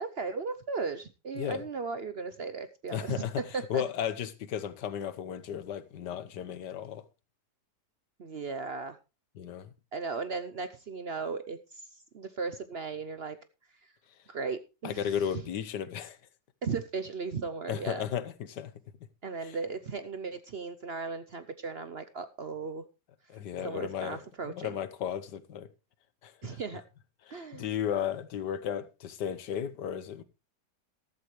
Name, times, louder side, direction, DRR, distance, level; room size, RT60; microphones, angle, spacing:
voice 1, 0.0-3.2 3.5-3.8 8.2-9.0 9.9-13.4 13.8-13.9 14.3-15.4 16.6-18.0 19.2-22.8 23.6-24.8 26.4-26.8 27.3-27.7, right 4 dB, 50° right, 0.8 m, -36 dB
voice 2, 2.9-3.4 3.7-7.0 9.4-9.7 14.8-16.2 17.7-18.7 19.4-19.6 23.3-24.2 24.5-25.7 26.2-26.6 27.3-30.2, left 9 dB, 90° left, 1.6 m, -34 dB
14.0 x 13.0 x 3.2 m
omnidirectional pair, 1.8 m